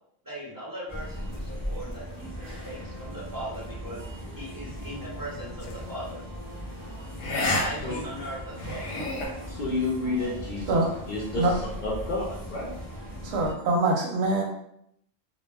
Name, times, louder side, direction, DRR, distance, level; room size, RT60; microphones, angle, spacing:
voice 1, 0.2-4.0 4.3-6.2 7.4-8.9, right 1 dB, 30° right, -6 dB, 0.4 m, -39 dB
sound 1, 0.9-13.5, equal, 10° left, 0.7 m, -38 dB
sound 2, 5.6-5.9 7.2-7.6 8.0-8.1 8.6-9.3, left 2 dB, 75° left, 0.9 m, -28 dB
voice 2, 9.5-10.8 11.1-12.7, left 2 dB, 55° left, -5 dB, 0.6 m, -30 dB
voice 3, 13.2-14.4, right 2 dB, 70° right, 0 dB, 0.8 m, -24 dB
2.2 x 2.1 x 3.3 m, 0.74 s
omnidirectional pair, 1.2 m